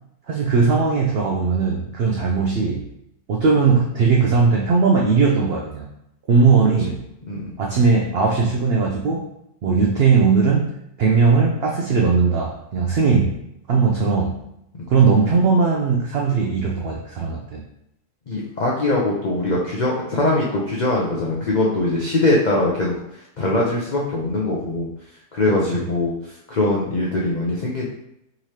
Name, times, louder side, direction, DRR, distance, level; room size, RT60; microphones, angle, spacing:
voice 1, 0.3-2.9 3.3-5.9 6.3-7.0 7.6-9.2 9.6-13.4 13.7-14.4 14.9-17.6 25.7-25.9, right 5 dB, 85° right, -1 dB, 0.5 m, -18 dB
voice 2, 18.3-23.0 23.4-24.9 25.3-26.2 26.5-27.8, left 2 dB, 70° left, -4 dB, 0.4 m, -21 dB
3.9 x 3.2 x 2.8 m, 0.80 s
omnidirectional pair, 1.6 m